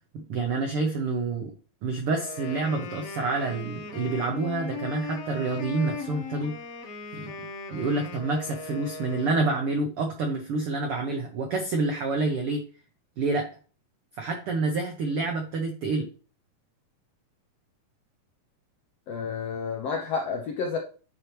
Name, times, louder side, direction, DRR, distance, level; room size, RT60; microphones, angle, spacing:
voice 1, 0.1-1.5 1.8-6.6 7.1-7.3 7.7-12.6 13.2-13.5 14.2-16.1, right 3 dB, 80° right, 3 dB, 1.2 m, -28 dB
Wind instrument woodwind instrument, 2.2-9.8, left 3 dB, 60° left, 1.9 m, -38 dB
voice 2, 19.1-20.8, left 5 dB, 75° left, 2 dB, 1.4 m, -30 dB
10.0 x 4.5 x 3.2 m, 0.37 s
omnidirectional pair, 3.9 m